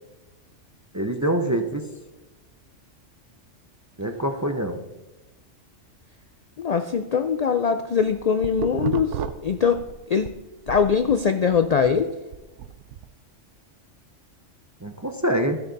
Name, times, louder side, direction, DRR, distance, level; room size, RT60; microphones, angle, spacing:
voice 1, 0.9-1.9 4.0-4.8 14.8-15.6, right 1 dB, 25° right, 6 dB, 0.4 m, -25 dB
voice 2, 6.6-10.3 10.7-12.2, left 6 dB, 85° left, 9 dB, 0.3 m, -22 dB
sound 1, 7.8-10.3 10.7-13.1, right 9 dB, 75° right, 1.0 m, -33 dB
14.0 x 6.6 x 4.0 m, 1.1 s
omnidirectional pair, 1.3 m